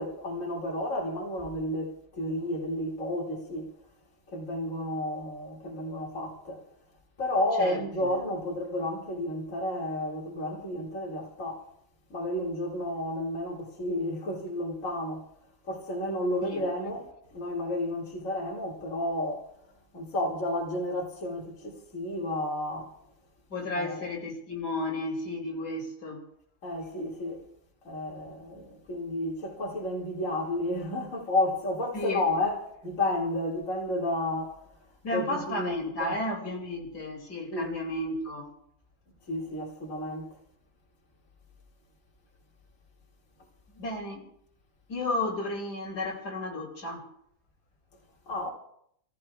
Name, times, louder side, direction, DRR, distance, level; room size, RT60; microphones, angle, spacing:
voice 1, 0.0-3.7 4.3-6.6 7.2-11.7 12.1-15.3 15.7-19.5 19.9-23.0 23.7-24.1 26.6-27.4 27.8-34.6 35.1-36.1 37.5-37.7 39.3-40.3 48.3-48.5, left 1 dB, 50° left, 2.8 m, -31 dB
voice 2, 7.6-8.1 16.4-16.6 23.5-26.2 31.9-32.2 35.0-38.5 43.7-44.3 44.9-47.0, left 2 dB, 80° left, 3.4 m, -33 dB
29.5 x 15.5 x 2.4 m
omnidirectional pair, 1.7 m